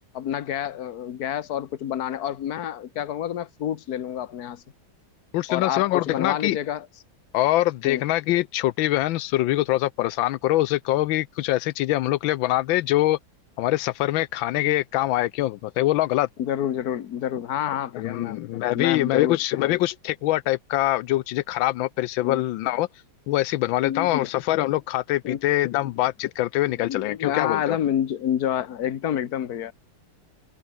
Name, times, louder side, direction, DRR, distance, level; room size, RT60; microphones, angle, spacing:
voice 1, 0.1-4.6 5.5-6.9 7.8-8.0 16.4-19.8 22.2-22.4 23.8-24.3 25.2-25.4 26.7-29.7, left 10 dB, 55° left, 1.6 m, -28 dB
voice 2, 5.3-6.6 7.3-13.2 13.6-16.3 17.9-22.9 23.3-27.8, left 16 dB, 90° left, 1.4 m, -24 dB
omnidirectional pair, 2.1 m